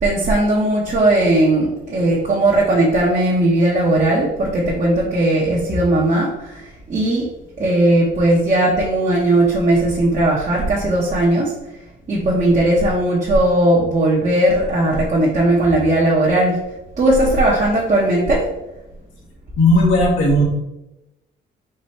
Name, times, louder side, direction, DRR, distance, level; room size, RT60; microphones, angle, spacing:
voice 1, 0.0-7.3 7.6-11.5 12.1-16.6 17.0-18.5, right 1 dB, 40° right, -4 dB, 1.0 m, -17 dB
voice 2, 19.6-20.4, left 1 dB, 85° left, -1 dB, 1.4 m, -15 dB
4.8 x 2.6 x 4.3 m, 0.94 s
cardioid pair, 90°, 20 cm